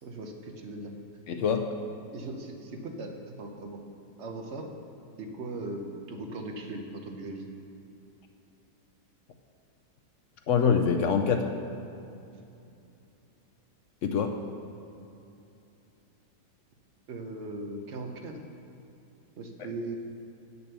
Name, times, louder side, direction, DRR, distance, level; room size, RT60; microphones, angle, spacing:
voice 1, 0.0-0.9 2.1-3.1 3.4-3.8 4.2-4.7 5.2-7.4 17.1-18.4 19.4-20.0, right 2 dB, 50° right, 3 dB, 1.0 m, -38 dB
voice 2, 1.3-1.7 10.5-11.5 14.0-14.4 19.6-19.7, left 6 dB, 70° left, 5 dB, 0.7 m, -25 dB
8.3 x 6.8 x 6.8 m, 2.7 s
omnidirectional pair, 1.8 m